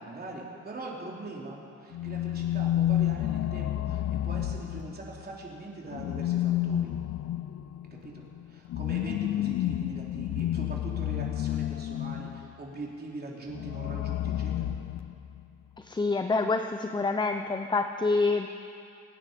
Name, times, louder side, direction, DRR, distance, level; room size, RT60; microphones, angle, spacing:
voice 1, 0.0-6.9 7.9-14.7, right 2 dB, 30° right, -2 dB, 3.5 m, -42 dB
sound 1, 1.9-5.2 5.9-12.5 13.5-15.4, left 12 dB, 60° left, 0.5 m, -30 dB
voice 2, 15.8-18.5, left 3 dB, 15° left, 7 dB, 0.6 m, -27 dB
25.0 x 10.0 x 5.3 m, 2.5 s
cardioid pair, 90°, 30 cm